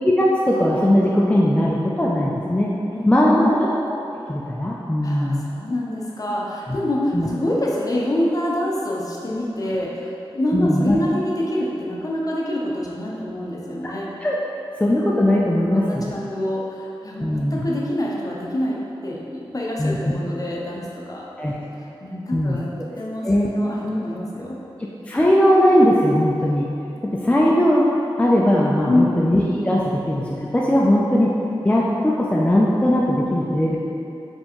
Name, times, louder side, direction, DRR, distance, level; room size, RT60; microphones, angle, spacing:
voice 1, 0.2-2.7 3.1-3.6 3.9-4.0 4.3-5.4 6.7-6.8 7.1-7.3 10.5-11.0 13.8-13.9 14.2-14.4 14.8-16.1 17.2-17.6 19.8-20.0 21.4-21.5 22.3-22.6 23.2-23.5 23.8-24.0 25.1-26.7 27.1-27.8 28.2-31.3 31.6-33.8, left 1 dB, 15° left, -5 dB, 0.4 m, -19 dB
voice 2, 2.9-3.6 5.0-14.1 15.6-21.3 21.8-22.7 23.0-23.3 23.5-24.6 28.8-29.2, left 1 dB, 40° left, -4 dB, 0.7 m, -26 dB
4.3 x 3.4 x 3.0 m, 2.8 s
wide cardioid pair, 65°, 10 cm